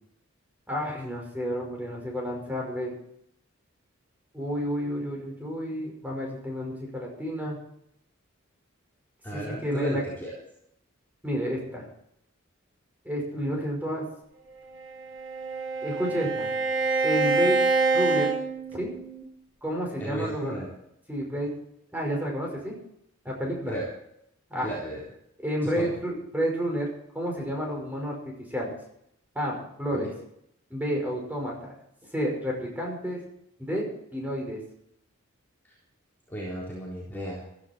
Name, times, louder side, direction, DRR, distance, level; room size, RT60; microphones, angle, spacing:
voice 1, 0.7-2.9 4.3-7.6 9.3-10.0 11.2-11.9 13.0-14.0 15.8-16.5 17.0-17.6 17.9-18.3 18.7-18.9 19.6-20.6 21.1-21.5 21.9-22.8 23.2-23.7 24.5-24.7 25.4-26.9 27.1-28.2 28.5-28.7 29.3-30.1 30.7-31.7 32.1-33.2 33.6-34.6, equal, 10° right, -1 dB, 5.4 m, -30 dB
voice 2, 9.2-10.3 20.0-20.7 23.7-23.8 24.6-25.0 25.7-25.9 29.9-30.1 36.3-37.4, equal, 10° left, -6 dB, 4.0 m, -34 dB
Bowed string instrument, 14.8-19.3, right 3 dB, 65° right, 3.0 m, -26 dB
16.0 x 14.5 x 4.6 m, 0.74 s
head